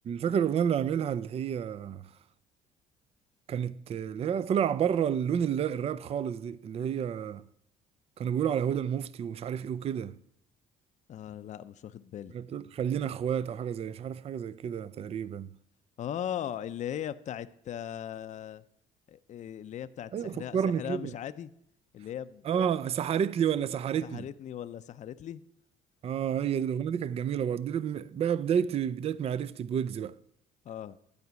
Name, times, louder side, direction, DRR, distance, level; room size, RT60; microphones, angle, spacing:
voice 1, 0.1-2.1 3.5-7.4 8.2-10.2 12.3-15.5 20.1-21.1 22.4-24.3 26.0-30.2, right 8 dB, 35° right, 0.4 m, -30 dB
voice 2, 11.1-12.3 16.0-18.6 19.1-21.5 21.9-22.4 24.0-25.4 30.7-31.0, left 10 dB, 45° left, 0.5 m, -38 dB
12.0 x 4.9 x 8.2 m
cardioid pair, 110°, 17 cm